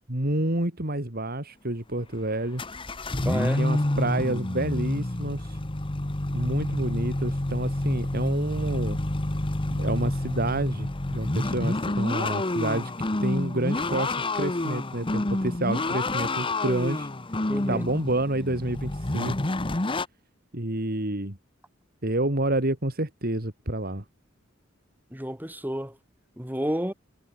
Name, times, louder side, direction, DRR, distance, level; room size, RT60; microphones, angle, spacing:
voice 1, 0.0-2.6 3.6-5.6 6.3-9.0 9.7-12.9 13.2-17.1 17.7-19.5 20.5-21.4 22.0-24.0, right 1 dB, 50° right, 3.4 m, -29 dB
sound 1, 1.9-2.1 2.6-20.1, left 2 dB, 25° left, 1.1 m, -28 dB
voice 2, 3.3-3.6 17.5-17.9 25.1-26.0 26.4-26.9, equal, 10° right, 4.1 m, -30 dB
head